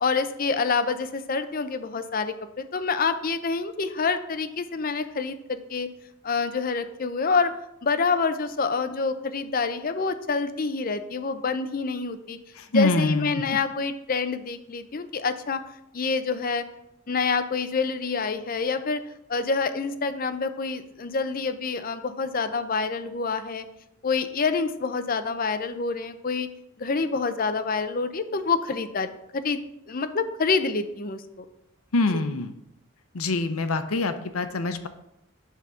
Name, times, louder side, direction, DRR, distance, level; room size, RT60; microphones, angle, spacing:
voice 1, 0.0-5.9 6.2-7.5 7.8-12.4 12.7-15.6 15.9-16.6 17.1-19.0 19.3-23.7 24.0-26.5 26.8-29.1 29.3-29.6 29.9-31.4 32.1-32.2, left 4 dB, 40° left, 10 dB, 0.5 m, -27 dB
voice 2, 12.6-13.4 31.9-32.6 33.1-34.9, left 3 dB, 90° left, 10 dB, 0.7 m, -25 dB
8.3 x 3.5 x 6.1 m, 0.84 s
head